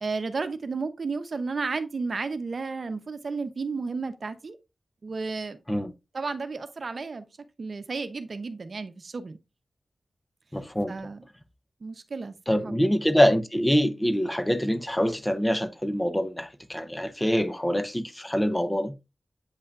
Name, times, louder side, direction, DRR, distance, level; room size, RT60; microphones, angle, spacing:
voice 1, 0.0-4.6 5.0-5.6 6.1-7.2 7.6-9.4 10.9-11.2 11.8-13.0, right 4 dB, 60° right, 0.8 m, -33 dB
voice 2, 10.5-10.9 12.5-18.9, equal, 10° left, 0.7 m, -25 dB
8.3 x 5.5 x 2.5 m
wide cardioid pair, 100°, 0 cm